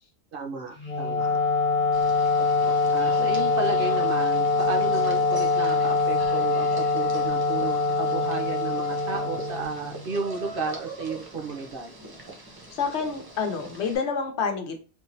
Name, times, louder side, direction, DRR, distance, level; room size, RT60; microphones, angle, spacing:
voice 1, 0.3-1.4 2.9-11.9, right 4 dB, 60° right, 2 dB, 0.8 m, -33 dB
Wind instrument woodwind instrument, 0.8-10.1, left 3 dB, 10° left, 1.6 m, -24 dB
sound 1, 1.9-14.0, right 2 dB, 25° right, 0.6 m, -42 dB
voice 2, 12.7-14.8, left 5 dB, 80° left, 5 dB, 1.0 m, -28 dB
3.5 x 2.9 x 2.6 m, 0.35 s
omnidirectional pair, 1.1 m